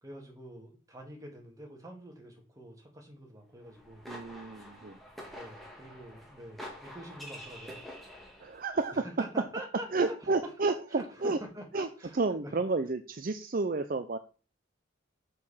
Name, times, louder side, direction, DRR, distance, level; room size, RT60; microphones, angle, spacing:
voice 1, 0.0-4.1 5.3-7.8 8.9-10.3 10.9-12.5, right 1 dB, 15° right, 1 dB, 2.2 m, -46 dB
sound 1, 3.6-8.7, equal, ahead, 2.1 m, -47 dB
voice 2, 4.1-5.0 8.4-9.1 9.9-11.4 11.7-14.2, right 3 dB, 45° right, 9 dB, 0.5 m, -31 dB
6.7 x 6.5 x 5.6 m, 0.37 s
head